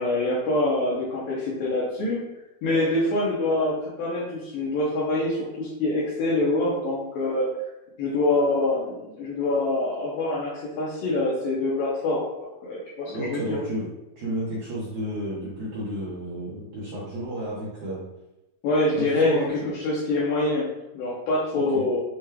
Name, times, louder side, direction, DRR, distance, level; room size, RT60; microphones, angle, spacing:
voice 1, 0.0-2.2 2.6-7.5 8.0-13.6 18.6-19.5 19.8-20.7 20.9-22.0, left 2 dB, 75° left, -6 dB, 2.1 m, -25 dB
voice 2, 13.1-13.9 14.2-18.0 18.9-19.7 21.5-21.9, right 1 dB, 65° right, -9 dB, 2.1 m, -32 dB
7.1 x 3.1 x 2.2 m, 0.95 s
omnidirectional pair, 4.6 m